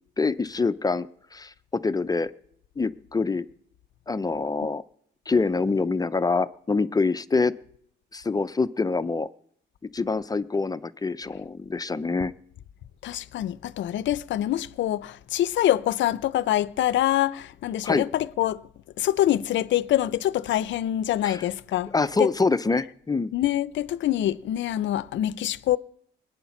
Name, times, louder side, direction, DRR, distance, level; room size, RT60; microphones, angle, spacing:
voice 1, 0.2-2.3 2.8-3.5 4.1-4.8 5.3-7.5 8.1-9.3 9.9-12.3 17.8-18.0 21.2-21.4 21.9-23.3, left 3 dB, 20° left, 0.5 m, -25 dB
voice 2, 13.0-18.6 19.0-21.9 22.2-22.3 23.3-25.8, left 12 dB, 70° left, 0.6 m, -25 dB
20.5 x 9.3 x 5.9 m
cardioid pair, 90°, 20 cm